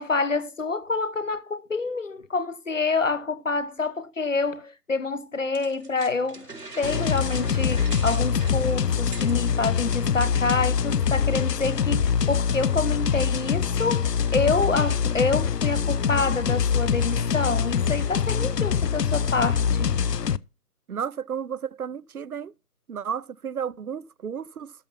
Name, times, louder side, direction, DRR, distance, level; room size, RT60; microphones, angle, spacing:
voice 1, 0.0-19.9, left 3 dB, 50° left, 1.1 m, -27 dB
sound 1, 5.5-9.5, right 3 dB, 80° right, 4.7 m, -41 dB
sound 2, 6.8-20.4, left 7 dB, 90° left, 0.7 m, -24 dB
voice 2, 20.9-22.5 22.9-24.7, right 7 dB, 65° right, 0.6 m, -32 dB
13.0 x 5.5 x 5.6 m
figure-of-eight pair, 180°, 47 cm